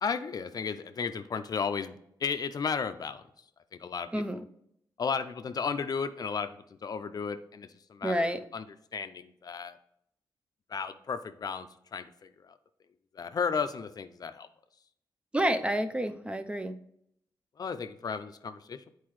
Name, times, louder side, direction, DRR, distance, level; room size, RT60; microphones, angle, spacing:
voice 1, 0.0-3.2 3.7-4.4 5.0-8.6 8.9-9.8 10.7-12.5 13.1-14.5 17.6-18.9, left 6 dB, 50° left, 10 dB, 0.5 m, -34 dB
voice 2, 8.0-8.4 15.3-16.8, right 1 dB, 15° right, 9 dB, 0.5 m, -29 dB
8.4 x 4.6 x 3.1 m, 0.74 s
cardioid pair, 70°, 8 cm